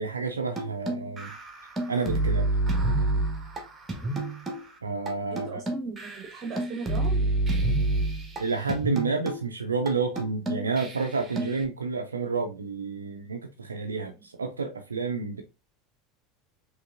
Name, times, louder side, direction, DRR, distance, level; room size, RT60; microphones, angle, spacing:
voice 1, 0.0-1.3 1.9-2.5 4.8-5.6 8.4-15.4, right 4 dB, 80° right, 0.5 m, -30 dB
sound 1, 0.6-4.7 5.1-5.2 5.4-8.4 8.7-9.4 9.9-10.0 10.2-11.6, right 2 dB, 20° right, 1.3 m, -29 dB
voice 2, 5.3-7.3 13.9-14.1, right 4 dB, 35° right, 1.0 m, -38 dB
5.2 x 3.2 x 2.5 m
figure-of-eight pair, 75°, 0 cm